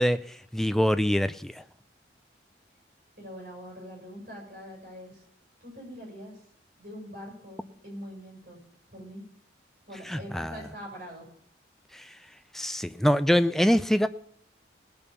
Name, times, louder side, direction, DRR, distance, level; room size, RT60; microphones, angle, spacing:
voice 1, 0.0-1.6 10.1-10.6 11.9-12.1 12.5-14.1, equal, ahead, 11 dB, 0.4 m, -25 dB
voice 2, 3.2-5.2 5.6-6.4 6.8-8.6 8.9-9.2 9.9-11.3, equal, 50° right, -1 dB, 6.7 m, -43 dB
18.5 x 6.9 x 6.9 m, 0.68 s
head